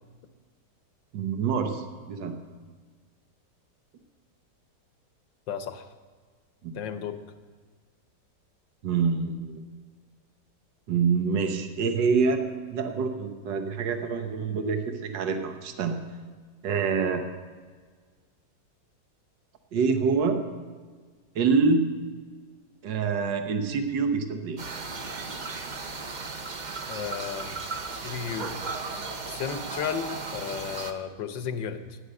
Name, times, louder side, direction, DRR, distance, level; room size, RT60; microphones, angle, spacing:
voice 1, 1.1-2.4 6.6-6.7 8.8-9.6 10.9-12.4 12.7-16.0 16.6-17.2 19.7-20.4 21.3-21.9 22.8-24.6, right 5 dB, 75° right, 6 dB, 1.7 m, -26 dB
voice 2, 5.5-5.9 6.7-7.2 26.9-27.6 27.9-28.6 29.2-32.0, left 7 dB, 80° left, 9 dB, 1.6 m, -34 dB
sound 1, 24.6-30.9, right 4 dB, 40° right, 0.7 m, -36 dB
13.5 x 10.0 x 6.5 m, 1.5 s
omnidirectional pair, 2.0 m